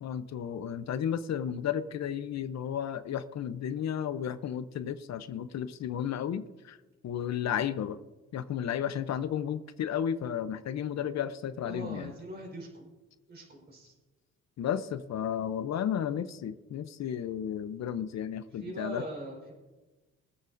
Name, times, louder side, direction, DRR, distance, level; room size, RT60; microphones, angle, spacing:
voice 1, 0.0-6.8 7.0-8.0 8.3-12.1 14.6-19.0, left 9 dB, 60° left, 11 dB, 0.8 m, -33 dB
voice 2, 11.6-12.9 13.3-13.9 18.5-19.5, right 2 dB, 35° right, 0 dB, 4.5 m, -41 dB
23.5 x 8.4 x 2.6 m, 1.1 s
cardioid pair, 90°, 30 cm